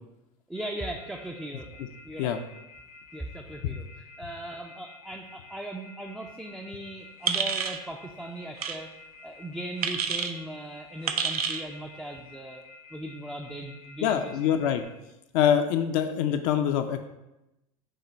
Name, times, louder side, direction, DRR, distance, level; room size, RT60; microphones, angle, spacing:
Telephone, 0.5-14.8, left 4 dB, 80° left, 1.6 m, -50 dB
voice 1, 0.5-2.4 3.1-8.9 9.2-12.6 12.9-14.6, right 1 dB, 5° right, 1 dB, 0.3 m, -39 dB
sound 1, 7.3-7.8 8.6-8.8 9.8-10.3 11.1-11.6, right 6 dB, 90° right, 0.4 m, -28 dB
voice 2, 14.0-14.8 15.3-17.1, left 9 dB, 60° left, 7 dB, 0.4 m, -24 dB
6.4 x 2.2 x 3.8 m, 0.94 s
hypercardioid pair, 95°, 19 cm